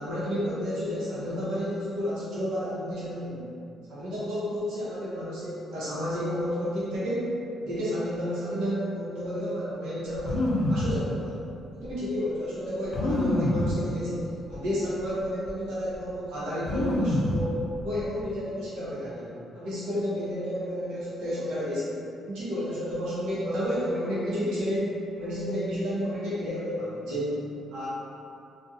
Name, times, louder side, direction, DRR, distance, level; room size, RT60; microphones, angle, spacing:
voice 1, 0.0-3.5 3.9-11.4 11.7-17.5 17.8-22.0 22.3-24.9 25.2-27.9, equal, 90° right, -10 dB, 0.8 m, -31 dB
sound 1, 10.2-10.9 11.8-11.9 12.9-13.7 14.5-14.6 15.0-15.5 16.6-17.4 17.7-18.3, left 1 dB, 65° left, 0.4 m, -26 dB
2.4 x 2.1 x 2.6 m, 2.5 s
cardioid pair, 90°, 0 cm